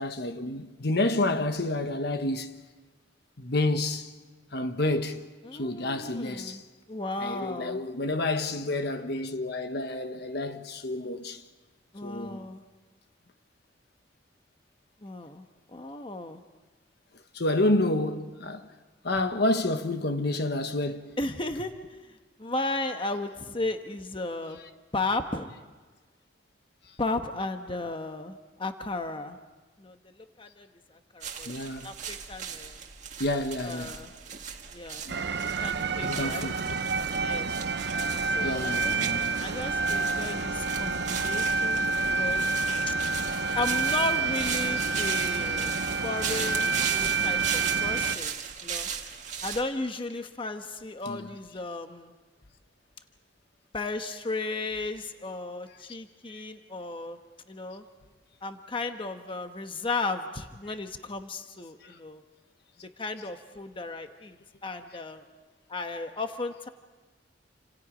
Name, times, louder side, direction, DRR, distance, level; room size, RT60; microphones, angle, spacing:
voice 1, 0.0-2.5 3.4-4.1 4.5-5.3 5.5-6.6 7.2-11.4 12.0-12.4 17.3-18.7 19.0-21.2 21.5-21.6 31.4-31.9 33.2-34.0 35.1-35.2 36.0-36.8 38.4-39.3 39.8-39.9 44.8-44.9 51.0-51.3 60.7-60.8, left 2 dB, 60° left, 1.3 m, -29 dB
voice 2, 5.4-6.6 6.9-7.8 11.9-12.6 15.0-16.4 21.2-21.7 22.4-24.6 24.9-25.5 27.0-29.4 29.8-30.0 30.4-31.5 31.8-32.8 33.6-34.1 34.7-35.1 35.6-36.5 37.2-37.5 38.3-38.9 39.4-42.5 42.9-43.0 43.5-48.9 49.4-52.1 53.7-57.2 57.5-57.8 58.4-62.2 62.8-64.4 64.6-65.2 65.7-66.7, left 2 dB, 30° left, 1.2 m, -35 dB
sound 1, 31.2-49.6, right 7 dB, 40° right, 2.0 m, -38 dB
sound 2, 35.1-48.2, right 4 dB, 65° right, 0.9 m, -28 dB
29.0 x 27.0 x 5.2 m
head